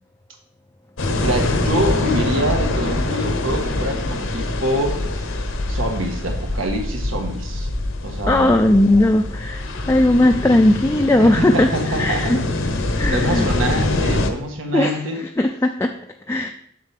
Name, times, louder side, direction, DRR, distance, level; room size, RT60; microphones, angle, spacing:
sound 1, 1.0-14.3, left 2 dB, 75° left, 0.8 m, -24 dB
voice 1, 1.2-5.0 5.7-7.7 8.0-8.5 11.2-12.5 13.1-15.2, right 1 dB, 80° right, 2 dB, 1.5 m, -25 dB
voice 2, 8.3-11.7 12.0-12.4 13.0-13.5 14.7-15.0 15.4-15.9 16.3-16.5, left 1 dB, 15° left, 4 dB, 0.3 m, -17 dB
7.3 x 6.6 x 3.5 m, 0.69 s
head